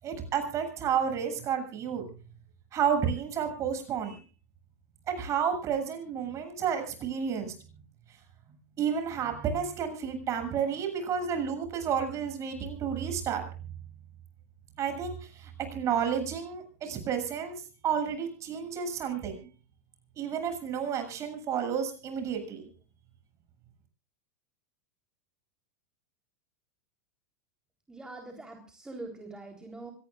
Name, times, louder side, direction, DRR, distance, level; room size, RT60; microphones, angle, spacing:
voice 1, 0.0-2.0 2.7-4.2 5.1-7.5 8.8-13.4 14.8-17.6 17.8-19.4 20.2-22.7, right 7 dB, 35° right, 6 dB, 7.8 m, -31 dB
voice 2, 27.9-29.9, right 2 dB, 10° right, 3 dB, 3.9 m, -43 dB
25.5 x 19.0 x 2.5 m, 0.38 s
hypercardioid pair, 100°, 8 cm